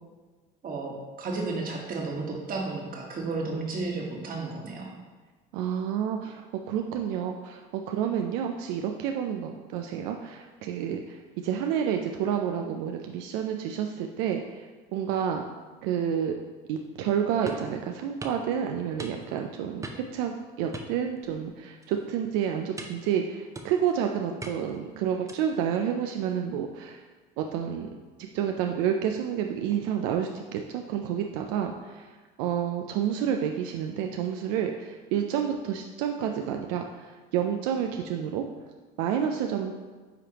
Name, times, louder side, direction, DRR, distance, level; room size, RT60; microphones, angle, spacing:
voice 1, 0.6-4.9, right 3 dB, 45° right, 0 dB, 1.4 m, -33 dB
voice 2, 5.5-15.4 15.8-16.3 16.7-20.3 20.6-27.0 27.4-27.9 28.3-32.1 32.4-38.5 39.0-39.7, right 8 dB, 80° right, 4 dB, 0.4 m, -29 dB
sound 1, 17.5-17.7 18.2-18.4 19.0-19.4 19.8-20.2 20.7-21.5 21.8-22.1 22.8-23.1 23.5-23.9 24.4-24.8 25.3-25.6, right 2 dB, 15° right, 0.6 m, -40 dB
9.6 x 3.3 x 2.9 m, 1.3 s
supercardioid pair, 100°, 21 cm